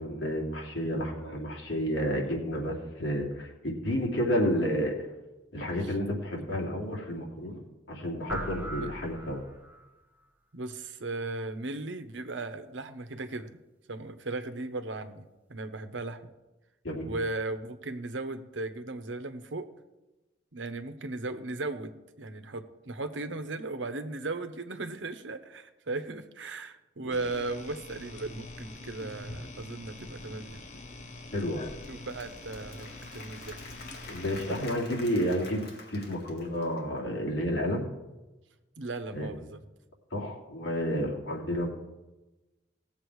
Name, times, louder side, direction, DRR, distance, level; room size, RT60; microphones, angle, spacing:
voice 1, 0.0-4.9 5.5-9.4 16.8-17.1 27.0-27.1 31.3-31.7 34.1-37.9 39.1-39.3 40.1-41.7, equal, 80° left, -1 dB, 2.7 m, -31 dB
voice 2, 0.9-1.4 5.8-5.9 6.4-6.6 8.8-8.9 10.5-13.5 13.9-15.2 15.5-16.3 17.0-19.7 20.5-21.9 22.2-30.6 31.9-33.6 38.8-39.6, right 2 dB, 75° right, 9 dB, 1.0 m, -37 dB
sound 1, 8.3-9.9, right 1 dB, 10° right, 0.9 m, -39 dB
sound 2, 27.1-34.7, left 2 dB, 40° left, 1.0 m, -44 dB
Applause / Crowd, 31.6-37.0, left 3 dB, 60° left, 2.1 m, -48 dB
18.0 x 7.5 x 4.8 m, 1.1 s
head